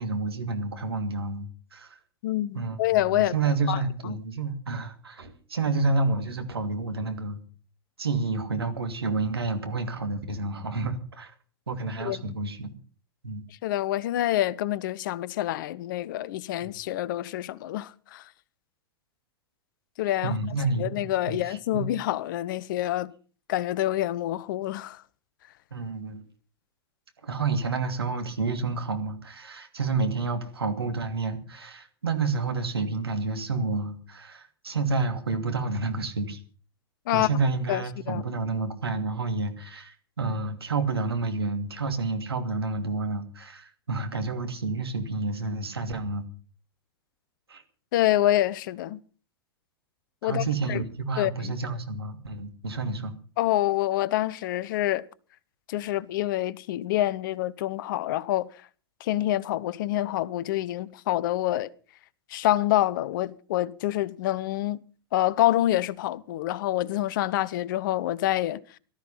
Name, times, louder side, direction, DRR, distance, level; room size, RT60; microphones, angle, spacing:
voice 1, 0.0-2.0 2.5-2.8 3.1-7.4 8.0-11.3 11.7-12.7 13.2-13.4 16.6-16.7 20.2-21.0 21.3-21.9 25.7-26.2 27.2-36.4 37.1-46.3 47.5-47.6 50.2-53.2, right 3 dB, 80° right, 2.7 m, -29 dB
voice 2, 2.2-3.3 3.7-4.2 12.0-12.3 13.6-18.3 20.0-20.3 20.8-23.1 23.5-25.0 37.1-37.3 37.7-38.2 47.9-49.0 50.2-50.8 51.2-51.5 53.4-55.1 55.7-58.5 59.0-61.7 62.3-64.8 65.1-68.6, left 14 dB, 55° left, 0.9 m, -27 dB
18.0 x 13.0 x 5.7 m
figure-of-eight pair, 95°, 13 cm